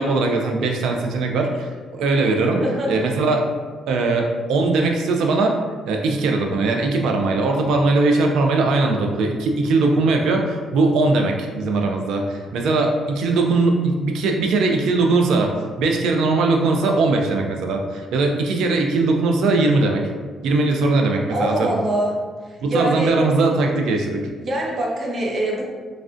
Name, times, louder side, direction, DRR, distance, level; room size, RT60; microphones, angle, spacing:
voice 1, 0.0-2.6 2.9-3.4 3.9-5.5 5.9-15.5 15.8-20.0 20.4-21.8 22.6-24.2, right 3 dB, 80° right, 2 dB, 0.4 m, -20 dB
voice 2, 2.6-2.9 21.3-22.1 22.5-23.1 24.4-25.7, right 1 dB, 45° right, -2 dB, 0.7 m, -23 dB
3.2 x 2.4 x 2.5 m, 1.5 s
cardioid pair, 90°, 0 cm